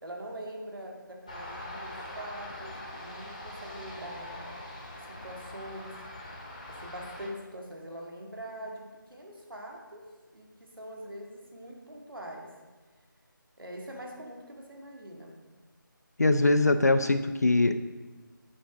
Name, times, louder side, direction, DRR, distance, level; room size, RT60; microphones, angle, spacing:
voice 1, 0.0-4.4 5.1-6.0 6.7-10.1 10.3-12.5 13.6-15.4, right 1 dB, 85° right, 0 dB, 1.8 m, -43 dB
sound 1, 1.3-7.3, left 1 dB, 20° left, 0.9 m, -42 dB
voice 2, 16.2-17.8, left 2 dB, 50° left, 10 dB, 0.4 m, -22 dB
8.8 x 4.9 x 4.8 m, 1.3 s
figure-of-eight pair, 175°, 11 cm